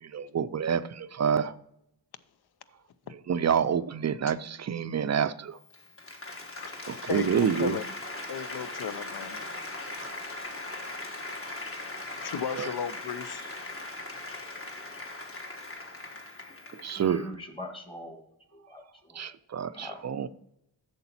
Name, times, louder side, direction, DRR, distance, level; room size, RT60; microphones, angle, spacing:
voice 1, 0.0-1.5 3.3-5.6 6.8-7.8 12.6-12.7 16.8-17.2 19.2-20.3, right 7 dB, 40° right, 0.4 m, -28 dB
Applause, 5.6-17.1, left 2 dB, 30° left, 1.4 m, -39 dB
voice 2, 6.6-7.8 8.3-9.4 12.2-13.6, left 7 dB, 65° left, 0.7 m, -35 dB
voice 3, 17.0-18.2 18.5-19.4 19.7-20.0, left 1 dB, 10° left, 1.6 m, -42 dB
8.1 x 6.9 x 4.2 m
wide cardioid pair, 115°, 41 cm